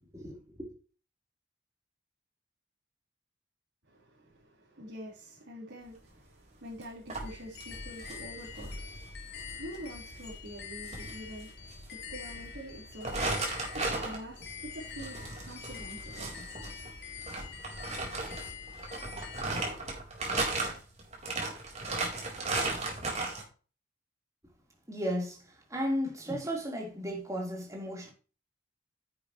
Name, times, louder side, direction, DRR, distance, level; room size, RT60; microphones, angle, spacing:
voice 1, 0.1-0.7 24.9-28.1, equal, 15° right, 3.5 m, -35 dB
voice 2, 3.9-16.5, equal, 75° right, 3.9 m, -46 dB
sound 1, 6.8-6.9 7.1-9.5 9.7-9.9 10.2-10.4 10.9-11.9 12.3-12.4 13.0-23.4, right 2 dB, 35° right, 4.1 m, -35 dB
sound 2, 7.2-19.4, left 5 dB, 60° left, 2.3 m, -45 dB
10.5 x 8.6 x 3.0 m
head